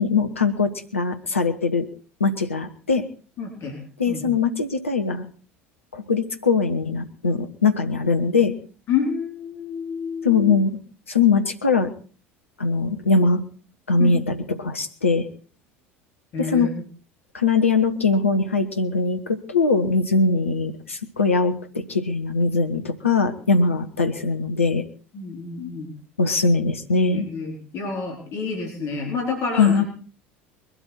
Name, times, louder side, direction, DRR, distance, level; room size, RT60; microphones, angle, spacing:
voice 1, 0.0-1.9 2.2-3.0 4.0-5.3 5.9-8.6 10.2-10.8 11.1-11.9 12.6-13.4 13.9-15.3 16.4-16.7 17.3-24.8 26.2-27.3 29.5-29.8, left 4 dB, 80° left, 7 dB, 1.2 m, -21 dB
voice 2, 3.4-3.8 4.1-4.3 8.9-10.5 14.0-14.2 16.3-16.8 25.1-25.9 27.1-29.9, left 5 dB, 45° left, 1 dB, 4.1 m, -29 dB
21.5 x 12.5 x 4.3 m, 0.39 s
figure-of-eight pair, 70°, 7 cm